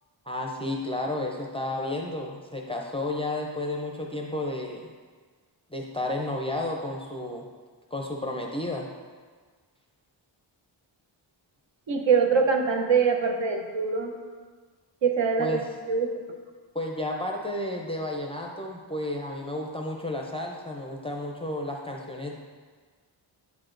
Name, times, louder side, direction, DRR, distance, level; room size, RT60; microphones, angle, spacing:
voice 1, 0.3-4.9 5.7-7.4 7.9-8.9 15.4-15.7 16.7-22.3, left 1 dB, 15° left, -1 dB, 0.4 m, -32 dB
voice 2, 11.9-14.1 15.0-15.6 15.9-16.1, right 5 dB, 70° right, 3 dB, 0.7 m, -23 dB
8.1 x 4.8 x 2.5 m, 1.5 s
wide cardioid pair, 140°, 47 cm